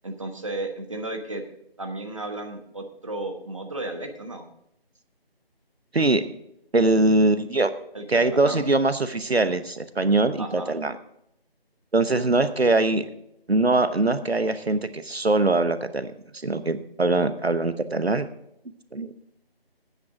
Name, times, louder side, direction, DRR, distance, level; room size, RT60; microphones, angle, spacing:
voice 1, 0.0-1.4 1.8-4.5 7.9-8.6 10.4-10.8, right 2 dB, 30° right, 5 dB, 1.1 m, -34 dB
voice 2, 6.7-7.7 8.1-10.9 11.9-13.0 13.5-16.1 16.4-18.3 18.9-19.1, right 2 dB, 85° right, 12 dB, 1.0 m, -22 dB
15.5 x 9.5 x 3.7 m, 0.77 s
figure-of-eight pair, 165°, 31 cm